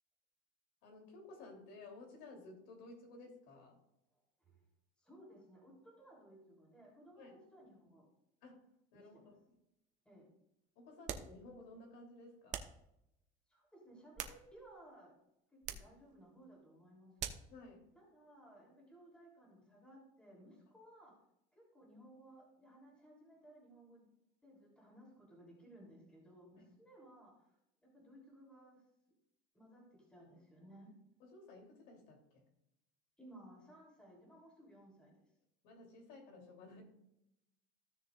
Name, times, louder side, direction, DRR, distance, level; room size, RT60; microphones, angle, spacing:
voice 1, 0.8-3.8 7.2-7.3 8.4-8.7 8.9-9.4 10.7-12.6 17.5-17.9 26.6-26.7 31.2-32.4 35.6-36.8, left 2 dB, 70° left, 1 dB, 3.0 m, -55 dB
voice 2, 5.0-8.1 8.9-9.4 10.0-10.3 13.5-15.2 15.5-17.4 17.9-21.2 21.5-24.1 24.4-27.5 27.8-28.8 29.5-30.9 33.2-35.3, right 1 dB, 5° left, -3 dB, 3.1 m, -59 dB
sound 1, 11.0-11.4 12.5-12.8 13.9-14.8 15.6-16.0 17.2-17.5, right 8 dB, 40° right, 0.9 m, -44 dB
16.0 x 6.6 x 2.4 m, 0.83 s
cardioid pair, 160°, 20 cm